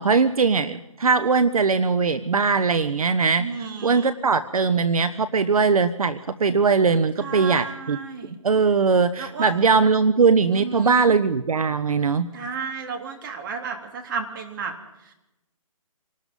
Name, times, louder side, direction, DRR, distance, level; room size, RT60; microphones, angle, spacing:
voice 1, 0.0-3.5 3.8-8.0 8.4-12.3, right 5 dB, 75° right, 13 dB, 1.1 m, -20 dB
voice 2, 3.4-4.1 7.2-8.3 9.2-9.5 10.5-11.1 12.3-14.7, right 6 dB, 35° right, 4 dB, 3.3 m, -33 dB
26.5 x 19.0 x 5.4 m, 0.91 s
hypercardioid pair, 155°, 18 cm